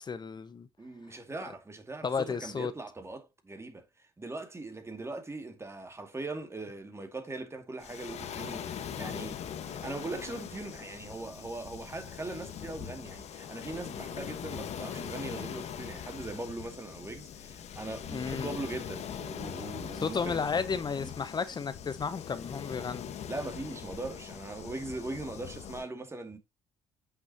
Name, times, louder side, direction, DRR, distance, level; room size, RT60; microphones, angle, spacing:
voice 1, 0.0-0.7 2.0-2.7 18.1-18.5 20.0-23.1, left 5 dB, 35° left, 0.8 m, -33 dB
voice 2, 0.8-3.8 4.2-9.4 9.6-20.4 21.0-21.1 23.3-26.4, right 2 dB, 20° right, 2.2 m, -40 dB
Waves surf, 7.8-25.9, left 8 dB, 65° left, 1.3 m, -41 dB
8.0 x 6.0 x 2.9 m
supercardioid pair, 65°, 12 cm